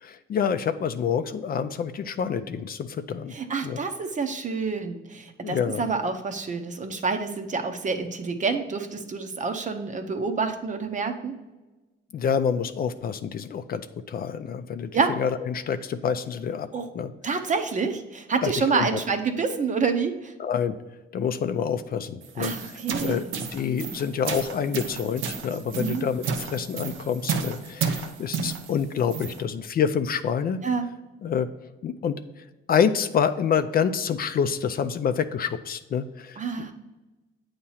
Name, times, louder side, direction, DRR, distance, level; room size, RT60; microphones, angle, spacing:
voice 1, 0.0-3.3 3.6-3.8 5.4-5.9 12.1-14.9 15.2-16.7 16.9-17.1 18.4-19.0 20.4-20.8 21.1-23.2 23.5-30.6 31.2-31.5 31.8-32.2 32.7-36.7, left 7 dB, 50° left, 10 dB, 0.4 m, -27 dB
voice 2, 3.3-11.4 14.9-15.2 16.7-16.9 17.2-20.3 22.4-23.3 25.8-26.1 30.6-30.8 36.4-36.7, right 4 dB, 40° right, 7 dB, 0.8 m, -28 dB
sound 1, 22.2-29.4, right 5 dB, 90° right, 0.7 m, -32 dB
8.4 x 2.9 x 5.6 m, 1.1 s
cardioid pair, 90°, 20 cm